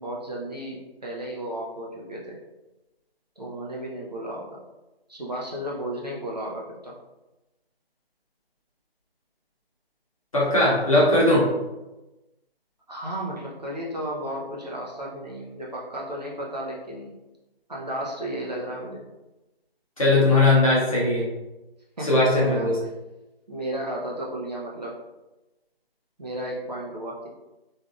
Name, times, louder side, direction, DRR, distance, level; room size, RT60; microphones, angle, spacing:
voice 1, 0.0-2.4 3.4-4.6 5.1-6.9 12.9-17.1 17.7-19.0 22.0-22.9 23.5-25.0 26.2-27.3, right 1 dB, 45° right, -4 dB, 0.6 m, -33 dB
voice 2, 10.3-11.4 20.0-21.2 22.0-22.8, left 2 dB, 35° left, -6 dB, 0.9 m, -19 dB
3.3 x 2.6 x 2.4 m, 1.0 s
figure-of-eight pair, 160°, 31 cm